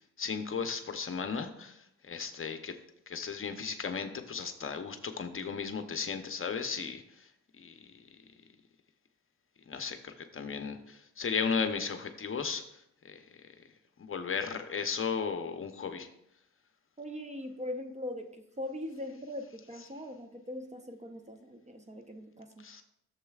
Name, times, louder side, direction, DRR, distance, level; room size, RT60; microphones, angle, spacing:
voice 1, 0.2-1.8 2.1-2.8 3.1-7.3 7.6-7.8 9.7-12.6 13.0-13.2 14.0-16.1 22.6-22.8, left 5 dB, 45° left, 7 dB, 0.8 m, -35 dB
voice 2, 17.0-22.6, left 1 dB, 20° right, 6 dB, 0.9 m, -41 dB
12.0 x 7.2 x 2.4 m, 0.78 s
cardioid pair, 85°, 31 cm